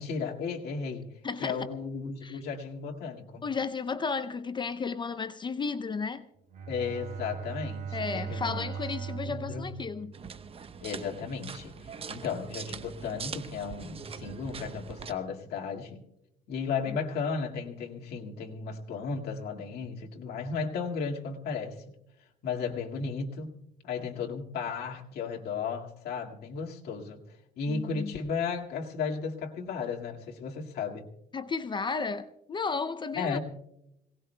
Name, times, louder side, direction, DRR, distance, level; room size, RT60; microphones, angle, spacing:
voice 1, 0.0-1.1 1.4-3.5 6.7-8.7 9.0-9.7 10.8-16.0 16.5-21.8 22.4-23.5 23.8-31.1 33.1-33.4, left 5 dB, 70° left, 2.0 m, -34 dB
voice 2, 1.2-1.6 2.2-2.4 3.4-6.3 7.9-10.1 27.7-28.1 31.3-33.4, left 5 dB, 25° left, 0.5 m, -33 dB
Bowed string instrument, 6.5-10.9, right 7 dB, 50° right, 2.8 m, -39 dB
sound 1, 10.1-15.1, right 6 dB, 35° right, 0.9 m, -42 dB
26.0 x 18.5 x 2.2 m
cardioid pair, 110°, 17 cm